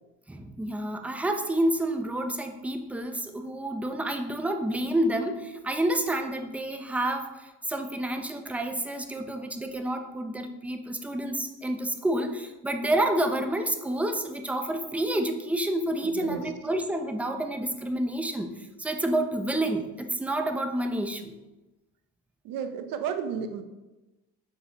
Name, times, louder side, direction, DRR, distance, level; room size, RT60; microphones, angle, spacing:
voice 1, 0.3-21.4, right 1 dB, 5° right, 5 dB, 0.5 m, -29 dB
voice 2, 16.1-16.4 22.4-23.6, right 7 dB, 60° right, 9 dB, 0.8 m, -32 dB
6.7 x 4.8 x 2.9 m, 1.1 s
supercardioid pair, 110°, 38 cm